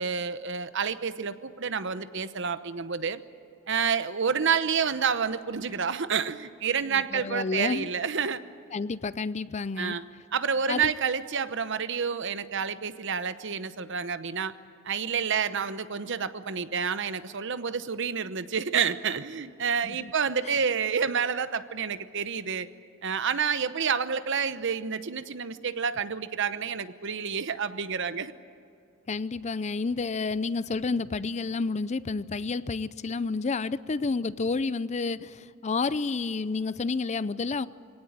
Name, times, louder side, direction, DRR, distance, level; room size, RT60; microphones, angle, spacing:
voice 1, 0.0-3.2 3.7-8.4 9.8-10.0 10.3-14.5 14.8-22.7 23.0-28.3, right 6 dB, 65° right, 13 dB, 0.9 m, -29 dB
voice 2, 6.9-7.9 8.7-10.0 10.7-10.9 19.8-20.1 20.4-20.6 29.1-37.7, left 4 dB, 35° left, 16 dB, 0.5 m, -30 dB
24.0 x 17.5 x 8.9 m, 2.5 s
head